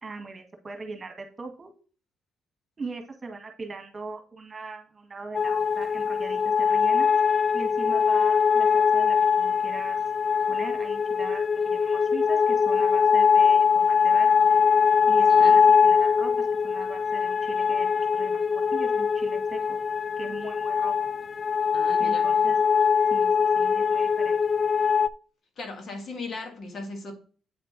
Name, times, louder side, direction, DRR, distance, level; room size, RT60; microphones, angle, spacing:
voice 1, 0.0-1.7 2.8-7.1 7.5-10.0 10.5-14.4 15.1-19.8 20.2-20.9 22.0-22.6 23.1-24.4, right 3 dB, 30° right, 1.7 m, -40 dB
sound 1, 5.3-25.1, left 6 dB, 35° left, 0.4 m, -22 dB
voice 2, 15.2-15.6 21.7-22.3 25.6-27.1, left 3 dB, 55° left, 2.0 m, -37 dB
8.6 x 4.4 x 4.1 m
cardioid pair, 90°, 0 cm